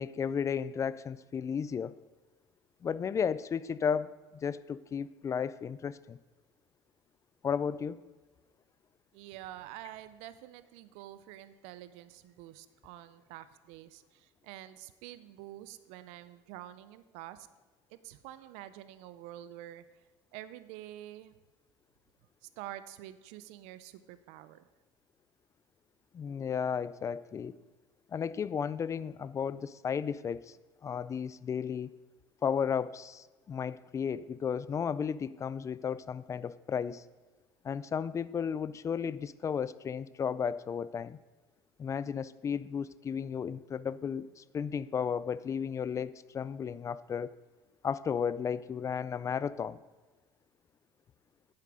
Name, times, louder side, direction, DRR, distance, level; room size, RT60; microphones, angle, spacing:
voice 1, 0.0-1.9 2.8-4.1 4.4-6.2 7.4-8.0 26.1-27.6 28.1-30.5 30.8-31.9 32.4-37.0 37.6-41.2 41.8-47.3 47.8-49.8, left 7 dB, 30° left, 17 dB, 0.4 m, -34 dB
voice 2, 9.1-17.5 17.9-19.8 20.3-21.3 22.4-24.7, right 13 dB, 80° right, 13 dB, 0.6 m, -47 dB
9.6 x 7.5 x 4.8 m, 1.2 s
cardioid pair, 115°, 11 cm